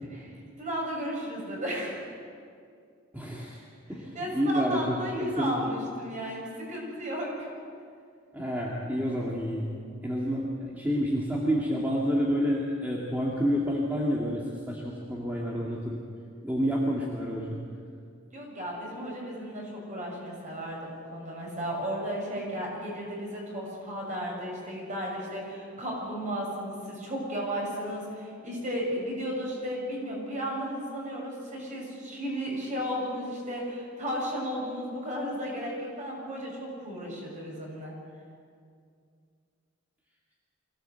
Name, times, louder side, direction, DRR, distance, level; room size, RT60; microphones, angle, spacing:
voice 1, 0.1-2.0 4.1-7.5 18.3-38.0, equal, 35° right, -2 dB, 6.9 m, -34 dB
voice 2, 3.1-3.6 3.9-5.7 8.3-9.7 10.0-16.0 16.4-17.6, equal, 10° right, -4 dB, 2.1 m, -29 dB
24.0 x 16.5 x 8.0 m, 2.3 s
head